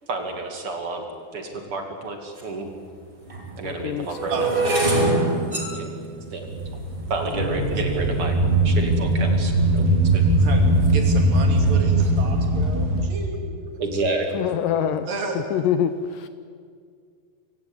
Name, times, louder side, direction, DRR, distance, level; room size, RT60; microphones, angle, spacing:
voice 1, 0.0-2.7 3.6-4.5 5.7-5.9 6.3-6.5 7.1-8.4 8.6-10.2 11.6-12.1 13.6-14.4, right 3 dB, 40° right, 4 dB, 2.8 m, -30 dB
sound 1, 2.4-2.5 3.2-9.4 10.0-10.4 10.7-11.0, right 2 dB, 15° right, 2.4 m, -26 dB
voice 2, 3.6-4.2 14.3-15.1 15.4-16.3, left 9 dB, 75° left, 11 dB, 2.1 m, -25 dB
voice 3, 4.3-4.9 10.4-10.6 10.9-13.5 15.1-15.4, right 4 dB, 65° right, 2 dB, 4.4 m, -32 dB
sound 2, 6.3-13.0, right 1 dB, 85° right, 5.7 m, -20 dB
25.5 x 16.5 x 8.8 m, 2.1 s
omnidirectional pair, 4.3 m